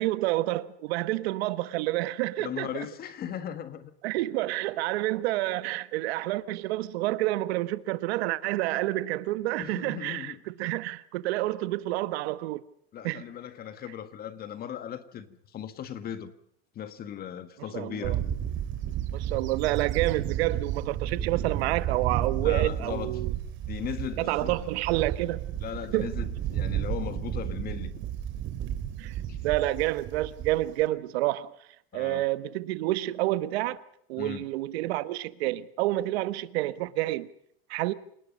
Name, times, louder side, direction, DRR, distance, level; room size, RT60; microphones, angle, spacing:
voice 1, 0.0-2.7 4.0-10.3 10.6-12.6 13.0-13.2 17.7-18.2 19.1-23.3 24.2-25.5 25.9-26.1 29.0-29.1 29.4-31.5 31.9-33.8 34.1-37.3 37.7-37.9, right 17 dB, 75° right, 1.4 m, -29 dB
voice 2, 2.4-3.9 9.6-10.4 12.9-16.3 16.7-18.2 22.4-23.2 23.6-24.6 25.6-27.9 29.3-29.4 31.9-32.3 34.2-34.5, left 9 dB, 30° left, 1.7 m, -38 dB
Bird / Wind, 18.0-30.8, right 11 dB, 40° right, 2.9 m, -32 dB
28.0 x 19.5 x 5.4 m
supercardioid pair, 160°, 31 cm